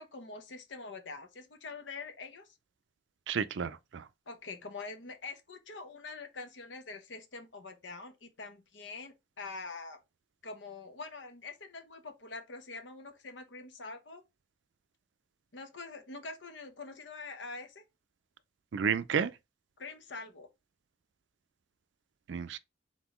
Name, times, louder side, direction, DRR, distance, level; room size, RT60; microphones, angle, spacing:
voice 1, 0.0-2.5 4.3-10.0 10.4-14.2 15.5-17.8 19.8-20.5, left 3 dB, 70° left, 0.9 m, -45 dB
voice 2, 3.3-4.0 18.7-19.3 22.3-22.6, right 6 dB, 75° right, 0.4 m, -31 dB
4.0 x 3.8 x 3.0 m
head